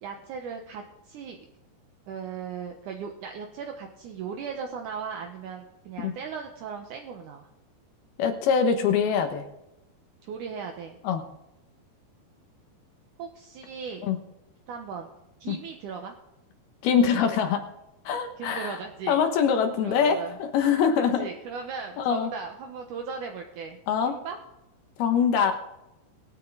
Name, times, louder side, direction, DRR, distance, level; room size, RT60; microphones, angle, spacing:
voice 1, 0.0-1.4 2.1-7.5 10.2-11.0 13.2-14.1 14.7-15.1 15.4-16.1 18.4-19.2 19.8-20.4 21.2-23.8 24.0-24.4, right 6 dB, 70° right, 3 dB, 2.0 m, -37 dB
voice 2, 8.2-9.5 11.0-11.3 14.0-14.2 15.5-15.6 16.8-17.6 18.0-18.8 19.1-21.3 22.0-22.3 23.9-24.1 25.0-25.5, left 7 dB, 75° left, 6 dB, 3.0 m, -23 dB
21.5 x 9.2 x 3.9 m, 0.91 s
omnidirectional pair, 4.9 m